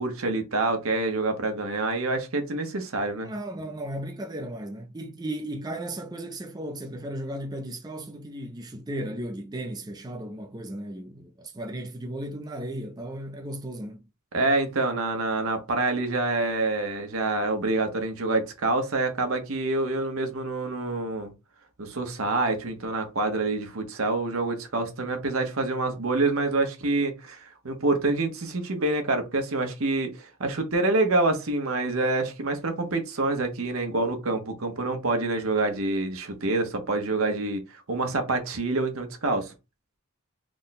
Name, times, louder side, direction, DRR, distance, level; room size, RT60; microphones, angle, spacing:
voice 1, 0.0-3.3 14.3-21.3 21.8-39.5, right 2 dB, 80° right, 1.0 m, -27 dB
voice 2, 3.2-14.0, right 1 dB, 20° right, 0.5 m, -35 dB
3.5 x 2.2 x 4.0 m
head